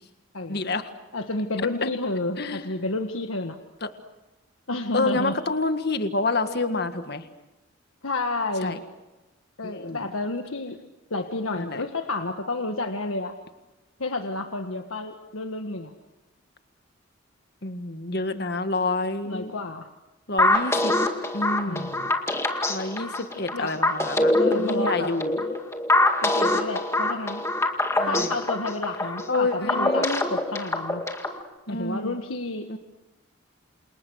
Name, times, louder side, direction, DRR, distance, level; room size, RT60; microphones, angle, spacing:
voice 1, 0.5-0.8 1.6-1.9 2.4-2.6 3.8-3.9 4.9-7.2 8.6-8.8 9.6-10.1 11.6-11.8 17.6-19.5 20.3-20.9 21.3-21.9 22.7-25.4 28.0-28.3 29.3-30.2 31.7-32.1 32.7-32.8, left 2 dB, 50° left, 8 dB, 1.8 m, -28 dB
voice 2, 1.1-3.6 4.7-5.4 8.0-8.8 9.6-10.8 11.1-13.3 14.0-15.9 19.2-19.9 21.7-22.1 23.5-23.8 24.4-25.1 26.2-27.4 28.0-31.0 31.7-32.7, left 2 dB, 85° left, 5 dB, 1.6 m, -30 dB
sound 1, 20.4-31.4, left 2 dB, 15° left, 2.1 m, -24 dB
28.5 x 28.5 x 6.5 m, 1.1 s
head